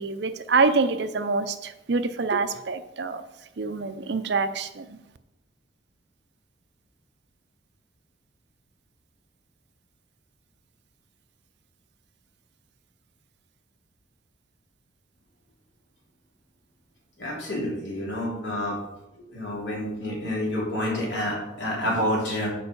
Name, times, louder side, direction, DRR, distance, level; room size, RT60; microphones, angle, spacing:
voice 1, 0.0-3.2 3.6-5.0, right 4 dB, 60° right, 0.6 m, -26 dB
voice 2, 17.2-18.8 19.3-22.5, left 1 dB, 70° left, 3.1 m, -28 dB
7.0 x 4.7 x 6.9 m
head